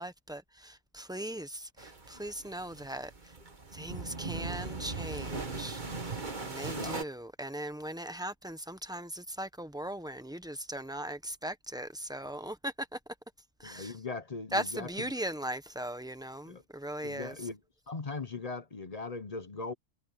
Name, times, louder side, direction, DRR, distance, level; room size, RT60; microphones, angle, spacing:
voice 1, 0.0-3.1 3.7-5.8 6.4-13.0 13.6-13.9 14.5-17.3, right 1 dB, 5° right, 0.9 m, -39 dB
sound 1, 1.8-7.0, right 3 dB, 30° right, 1.8 m, -39 dB
voice 2, 6.7-7.0 13.6-15.1 16.5-16.6 17.0-17.6 17.9-19.7, left 3 dB, 35° left, 0.8 m, -39 dB
omnidirectional pair, 1.6 m